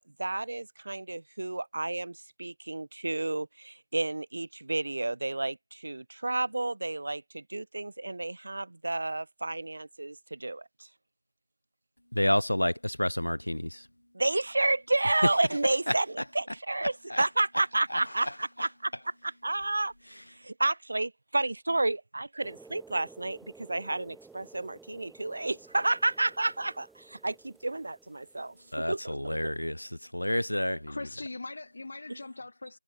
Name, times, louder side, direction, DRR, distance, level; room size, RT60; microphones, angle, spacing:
voice 1, 0.0-10.9 14.1-18.9 19.2-19.9 20.3-28.6 28.9-29.5 32.1-32.2, right 2 dB, 25° right, 2.0 m, -31 dB
voice 2, 12.1-13.9 15.9-16.0 16.8-17.2 17.9-18.3 28.7-31.1, left 1 dB, 75° left, 2.1 m, -30 dB
sound 1, 22.4-28.8, right 4 dB, ahead, 1.1 m, -54 dB
voice 3, 30.9-32.8, left 2 dB, 20° left, 1.3 m, -41 dB
figure-of-eight pair, 175°, 0 cm